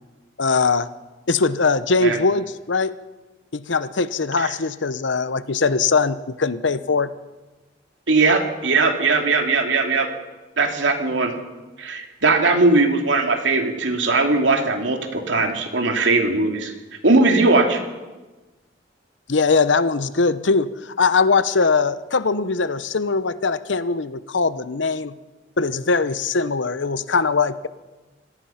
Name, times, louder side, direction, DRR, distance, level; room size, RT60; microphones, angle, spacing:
voice 1, 0.4-0.9 1.3-2.9 3.5-7.1 19.3-25.1 25.6-27.7, left 4 dB, 75° left, 15 dB, 0.9 m, -21 dB
voice 2, 8.1-10.1 10.6-11.3 11.8-16.7 17.0-17.8, right 3 dB, 75° right, 4 dB, 2.8 m, -19 dB
25.5 x 18.0 x 5.8 m, 1.2 s
head